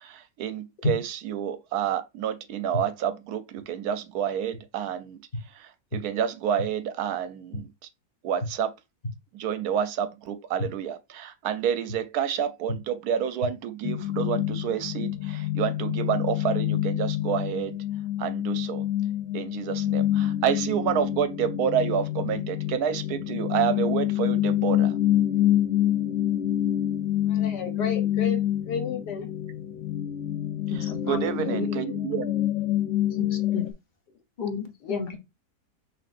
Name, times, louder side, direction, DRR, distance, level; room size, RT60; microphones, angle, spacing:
voice 1, 0.0-5.2 5.5-7.7 8.2-8.7 9.3-17.8 18.2-18.9 19.3-24.9 31.0-32.3, right 9 dB, 75° right, 1.1 m, -29 dB
sound 1, 13.8-33.7, left 12 dB, 65° left, 0.7 m, -27 dB
voice 2, 27.3-29.3 31.1-32.0 34.8-35.2, left 5 dB, 90° left, 1.6 m, -33 dB
voice 3, 30.7-31.7 33.2-33.6 34.4-35.2, left 5 dB, 35° left, 0.9 m, -34 dB
5.9 x 3.0 x 2.5 m
omnidirectional pair, 1.7 m